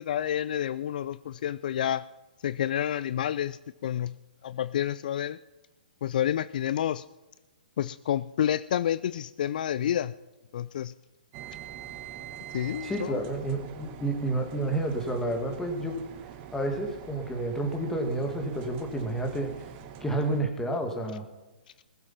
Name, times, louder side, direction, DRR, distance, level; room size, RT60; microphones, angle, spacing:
voice 1, 0.0-2.0 2.4-4.2 4.4-5.4 6.0-7.0 7.8-10.1 10.5-10.9 12.5-13.2, left 10 dB, 55° left, 17 dB, 0.4 m, -29 dB
sound 1, 11.3-20.4, right 10 dB, 30° right, 1.3 m, -44 dB
voice 2, 12.8-16.0 16.5-19.5 20.0-21.3, right 1 dB, 10° left, 4 dB, 2.1 m, -30 dB
20.0 x 7.9 x 5.7 m, 1.1 s
hypercardioid pair, 130°, 5 cm